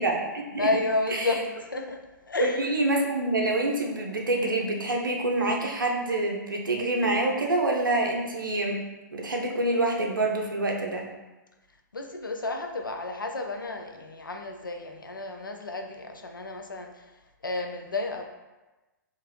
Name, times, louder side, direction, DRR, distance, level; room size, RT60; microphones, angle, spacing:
voice 1, 0.0-0.7 1.1-1.3 2.4-8.8 9.1-11.1, right 2 dB, 80° right, 1 dB, 0.5 m, -26 dB
voice 2, 0.6-2.0 2.3-2.7 11.9-17.1 17.4-18.2, left 2 dB, 85° left, 4 dB, 0.4 m, -31 dB
2.7 x 2.5 x 3.0 m, 1.1 s
figure-of-eight pair, 110°, 11 cm